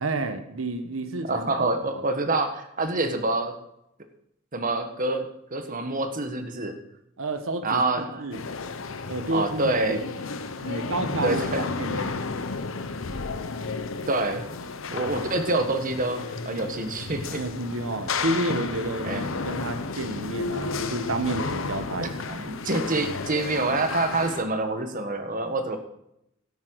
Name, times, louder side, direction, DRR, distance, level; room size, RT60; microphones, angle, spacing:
voice 1, 0.0-2.0 7.2-8.4 9.1-10.0 10.6-12.3 17.3-22.4, right 2 dB, 75° right, 9 dB, 1.2 m, -31 dB
voice 2, 1.3-3.5 4.5-6.7 7.6-8.2 9.3-10.0 11.2-11.6 14.1-14.4 14.9-17.4 19.0-19.3 22.0-25.8, right 2 dB, 40° right, 7 dB, 1.4 m, -27 dB
sound 1, 8.3-24.4, left 4 dB, 70° left, 1.0 m, -32 dB
13.0 x 10.5 x 4.7 m, 0.81 s
head